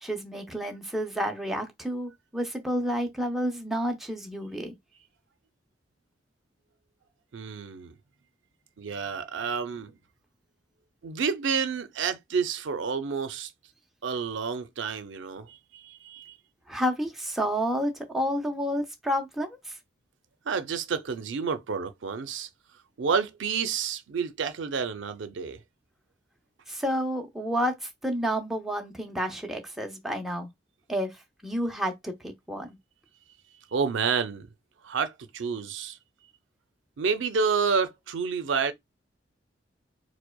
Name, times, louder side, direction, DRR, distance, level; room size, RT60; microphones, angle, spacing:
voice 1, 0.0-4.7 16.7-19.8 26.7-30.5 30.9-31.2 31.4-32.8, equal, ahead, 0.5 m, -30 dB
voice 2, 7.3-7.9 8.8-9.9 11.0-13.5 14.0-16.4 20.5-22.5 23.0-25.6 33.7-34.5 34.8-36.0 37.0-38.7, right 5 dB, 90° right, 0.5 m, -29 dB
4.6 x 2.1 x 2.2 m
head